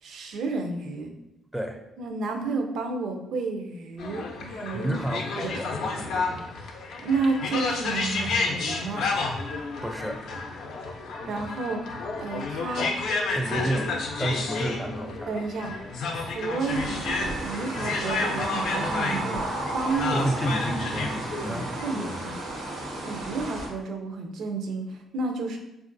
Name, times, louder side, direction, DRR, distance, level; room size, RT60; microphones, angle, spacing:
voice 1, 0.0-1.1 2.0-4.9 5.4-5.6 7.0-9.0 11.3-12.9 15.3-15.8 16.1-19.4 19.7-20.3 21.3-22.4 23.0-25.6, right 3 dB, 75° right, 4 dB, 0.5 m, -31 dB
sound 1, 4.0-21.9, left 3 dB, 80° left, 0.4 m, -31 dB
voice 2, 4.7-6.5 9.8-10.3 13.3-15.4 20.1-22.2, right 1 dB, 5° right, 5 dB, 0.4 m, -31 dB
sound 2, 16.6-23.7, right 2 dB, 90° right, 0.8 m, -33 dB
3.7 x 2.4 x 2.5 m, 0.91 s
cardioid pair, 90°, 0 cm